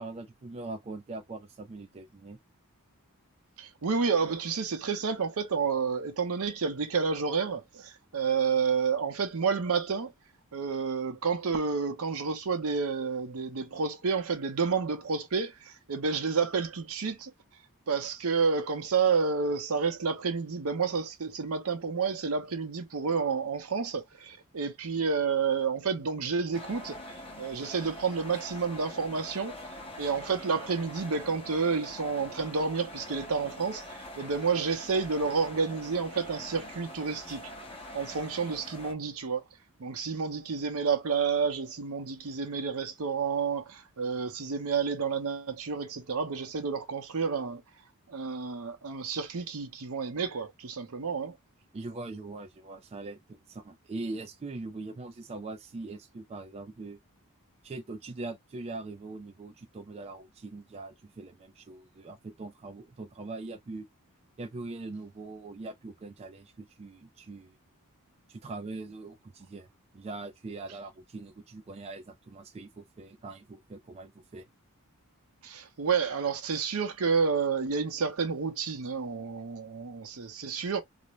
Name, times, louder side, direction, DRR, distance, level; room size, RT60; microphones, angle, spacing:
voice 1, 0.0-2.4 51.7-57.0 57.6-63.9 64.4-67.5 68.3-69.7 69.9-74.5, right 3 dB, 30° right, 0.3 m, -42 dB
voice 2, 3.6-10.1 10.5-17.3 17.9-27.0 27.4-29.6 30.0-37.4 37.9-39.4 39.8-47.6 48.1-51.4 75.4-80.8, right 5 dB, 70° right, 0.7 m, -30 dB
sound 1, 26.5-38.9, left 1 dB, 25° left, 0.7 m, -44 dB
2.5 x 2.1 x 3.0 m
head